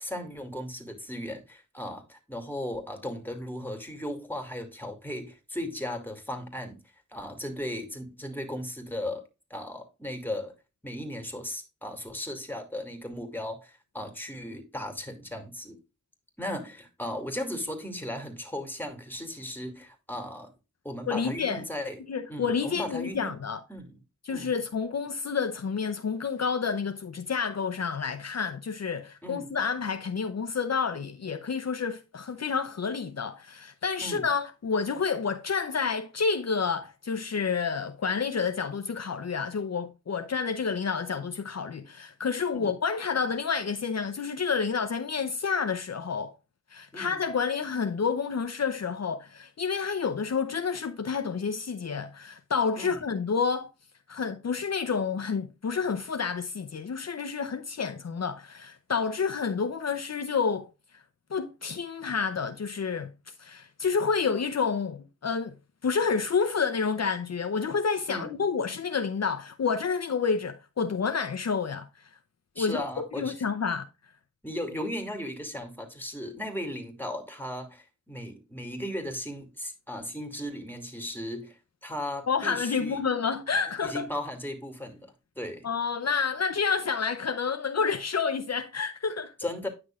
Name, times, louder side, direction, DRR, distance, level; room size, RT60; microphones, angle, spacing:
voice 1, 0.0-6.8 7.1-10.5 10.8-15.8 16.4-20.5 20.8-22.0 22.3-23.3 23.7-24.0 24.3-24.5 29.2-29.6 34.0-34.2 42.5-42.7 46.9-47.2 52.8-53.0 68.1-68.4 72.5-73.3 74.4-83.1 83.8-85.7 89.4-89.7, left 1 dB, 5° left, 2.4 m, -36 dB
voice 2, 21.1-21.6 22.1-23.6 24.2-46.3 46.7-53.7 54.1-60.7 60.9-61.0 61.3-63.1 63.4-65.5 65.8-72.1 72.6-73.8 82.3-84.0 85.6-89.3, left 5 dB, 55° left, 0.7 m, -29 dB
9.8 x 6.1 x 2.4 m
cardioid pair, 50°, 30 cm